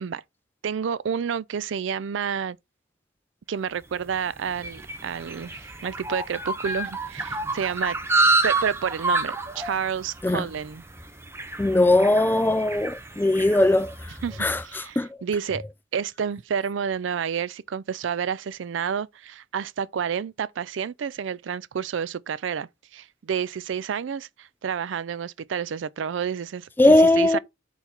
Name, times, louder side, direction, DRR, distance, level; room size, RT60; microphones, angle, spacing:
voice 1, 0.6-2.6 3.5-8.0 8.4-10.8 14.2-15.6 15.9-27.4, right 7 dB, 80° right, 0.4 m, -30 dB
sound 1, 3.9-14.5, right 2 dB, 15° right, 0.7 m, -29 dB
voice 2, 11.6-14.1 14.4-15.2 26.8-27.4, left 1 dB, 10° left, 0.3 m, -20 dB
5.7 x 4.1 x 4.4 m
head